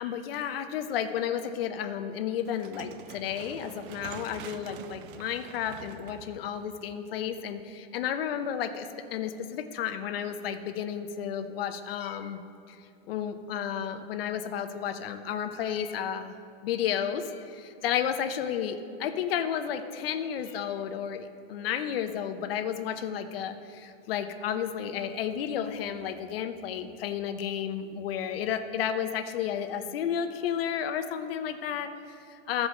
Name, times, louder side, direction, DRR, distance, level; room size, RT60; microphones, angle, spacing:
voice 1, 0.0-12.4 12.7-12.8 13.1-16.4 16.6-32.7, left 9 dB, 65° left, 8 dB, 0.8 m, -32 dB
sound 1, 2.4-7.6, right 9 dB, 55° right, 0.5 m, -46 dB
14.0 x 4.8 x 6.4 m, 2.6 s
supercardioid pair, 175°, 31 cm